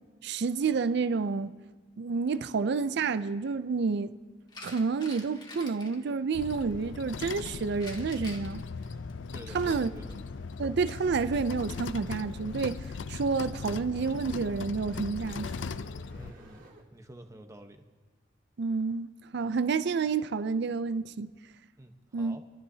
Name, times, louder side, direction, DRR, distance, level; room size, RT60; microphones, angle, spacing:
voice 1, 0.2-1.5 2.0-4.1 4.6-8.6 9.5-9.9 10.6-15.5 18.6-21.3 22.1-22.4, right 5 dB, 65° right, 0.5 m, -29 dB
sound 1, 4.5-6.0 7.8-10.2 11.3-11.6, left 2 dB, 25° left, 1.9 m, -47 dB
sound 2, 6.3-16.3, left 4 dB, 75° left, 0.5 m, -39 dB
voice 2, 9.3-10.2 16.2-16.7 16.9-17.8 21.8-22.4, right 1 dB, 15° right, 1.0 m, -48 dB
sound 3, 12.2-16.8, right 1 dB, 90° right, 3.0 m, -56 dB
27.5 x 12.5 x 2.8 m
head